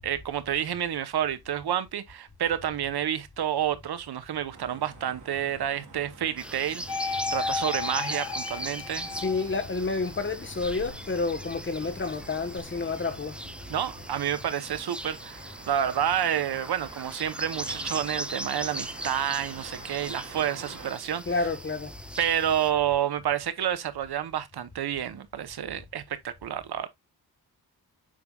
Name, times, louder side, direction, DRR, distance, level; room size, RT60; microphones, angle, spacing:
voice 1, 0.0-9.1 13.7-21.5 22.2-26.9, right 10 dB, 75° right, 1.0 m, -29 dB
sound 1, 4.5-20.9, right 4 dB, 50° right, 2.4 m, -48 dB
sound 2, 6.4-22.7, right 1 dB, 5° right, 0.5 m, -39 dB
sound 3, 6.9-9.7 10.2-12.6, left 5 dB, 80° left, 2.8 m, -35 dB
voice 2, 9.2-13.4 21.3-21.9, left 3 dB, 30° left, 1.1 m, -29 dB
7.6 x 5.5 x 2.3 m
wide cardioid pair, 125°, 39 cm